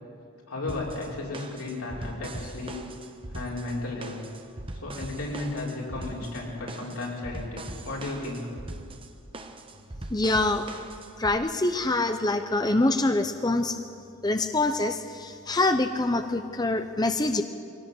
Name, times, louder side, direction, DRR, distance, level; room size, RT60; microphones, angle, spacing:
voice 1, 0.5-2.8 3.3-4.2 4.8-8.5, left 2 dB, 90° left, -3 dB, 5.5 m, -34 dB
sound 1, 0.7-11.4, right 1 dB, 25° right, 1.1 m, -41 dB
voice 2, 10.1-10.7 11.2-13.8 14.2-17.4, left 2 dB, 20° left, 8 dB, 0.7 m, -25 dB
22.0 x 17.5 x 7.7 m, 2.4 s
head